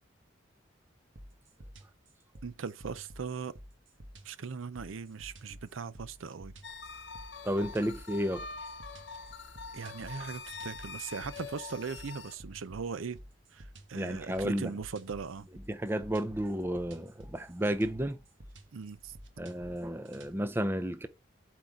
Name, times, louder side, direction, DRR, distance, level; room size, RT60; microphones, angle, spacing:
sound 1, 1.2-20.3, right 1 dB, 75° right, 1.2 m, -51 dB
voice 1, 2.4-3.6 4.2-6.5 9.7-13.2 13.5-15.5 18.7-19.2, right 5 dB, 90° right, 0.5 m, -39 dB
sound 2, 6.6-12.4, left 4 dB, 60° left, 0.9 m, -44 dB
voice 2, 7.4-8.5 14.0-14.7 15.7-18.2 19.4-21.1, equal, 10° right, 0.5 m, -32 dB
7.8 x 4.6 x 3.7 m
head